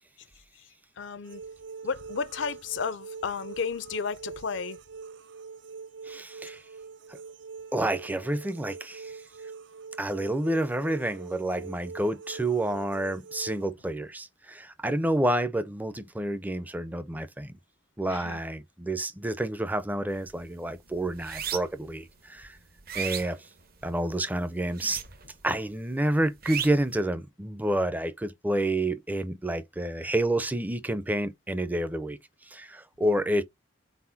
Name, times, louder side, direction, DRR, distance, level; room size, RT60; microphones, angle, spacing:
voice 1, 1.0-1.4 1.8-4.8 18.1-18.4 33.0-33.1, left 5 dB, 70° left, 0.5 m, -33 dB
sound 1, 1.2-13.7, right 5 dB, 65° right, 0.5 m, -44 dB
voice 2, 6.1-6.6 7.1-7.2 7.7-9.2 10.0-17.6 18.0-22.6 22.9-23.4 23.8-25.0 25.4-32.2 32.5-33.4, right 1 dB, 10° right, 0.5 m, -29 dB
sound 2, 20.1-20.4 20.8-21.9 22.4-24.0 24.7-25.5 25.7-27.0, right 8 dB, 50° right, 0.8 m, -35 dB
4.2 x 4.1 x 2.6 m
head